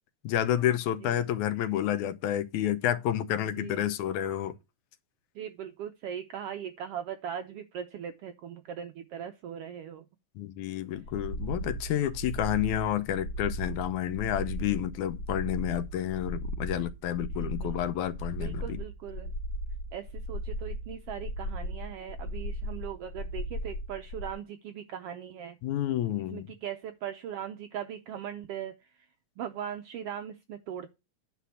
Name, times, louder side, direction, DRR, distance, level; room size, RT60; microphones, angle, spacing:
voice 1, 0.2-4.5 10.4-18.8 25.6-26.5, left 11 dB, 80° left, 2.2 m, -30 dB
voice 2, 3.4-3.8 5.3-10.1 10.9-11.0 17.2-17.7 18.4-19.3 19.9-25.6 26.3-29.1 29.4-30.9, right 9 dB, 80° right, 1.3 m, -39 dB
sound 1, 10.9-24.3, equal, 60° left, 2.1 m, -37 dB
9.9 x 4.2 x 7.0 m
omnidirectional pair, 3.5 m